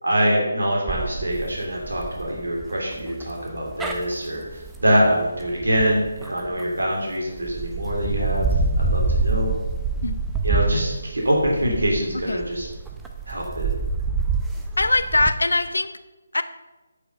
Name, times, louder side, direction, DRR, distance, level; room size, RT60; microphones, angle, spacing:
voice 1, 0.0-8.5 8.8-9.5 10.4-12.7 13.3-13.7, equal, 80° right, -1 dB, 2.8 m, -24 dB
sound 1, 0.9-6.9 7.4-15.3, right 4 dB, 5° right, 0.6 m, -27 dB
voice 2, 14.8-15.9 16.3-16.4, left 2 dB, 80° left, 11 dB, 0.7 m, -22 dB
9.7 x 5.6 x 5.3 m, 1.1 s
figure-of-eight pair, 155°, 0 cm